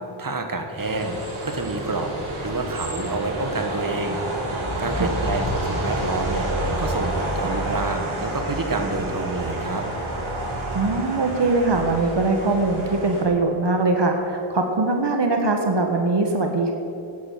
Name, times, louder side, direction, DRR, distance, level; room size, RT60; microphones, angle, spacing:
voice 1, 0.2-2.1 2.4-4.2 4.5-6.5 6.8-9.8, right 3 dB, 45° right, 5 dB, 1.7 m, -28 dB
sound 1, 0.8-13.2, right 1 dB, 90° right, 3.0 m, -29 dB
voice 2, 10.7-16.7, right 3 dB, 60° right, 4 dB, 1.5 m, -22 dB
11.5 x 10.5 x 7.6 m, 2.9 s
cardioid pair, 70°, 48 cm